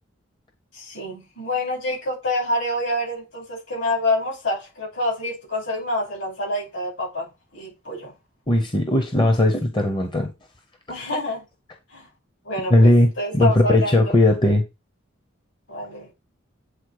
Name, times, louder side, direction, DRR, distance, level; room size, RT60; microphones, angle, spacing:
voice 1, 0.7-8.1 10.9-11.4 11.9-12.1 12.4-14.1 15.7-16.1, left 1 dB, 65° left, 5.7 m, -27 dB
voice 2, 8.5-10.3 12.7-14.6, left 1 dB, 25° left, 0.9 m, -18 dB
8.3 x 4.2 x 4.8 m
head